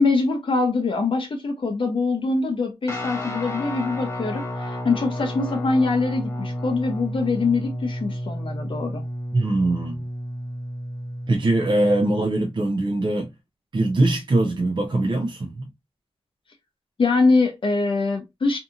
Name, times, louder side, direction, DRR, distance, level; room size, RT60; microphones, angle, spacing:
voice 1, 0.0-9.0 17.0-18.6, left 3 dB, 60° left, 0.6 m, -23 dB
Guitar, 2.9-12.3, equal, 25° left, 0.8 m, -31 dB
voice 2, 9.3-10.0 11.3-13.3 13.7-15.7, right 2 dB, 50° right, 0.5 m, -22 dB
2.6 x 2.6 x 2.4 m
wide cardioid pair, 70°, 10 cm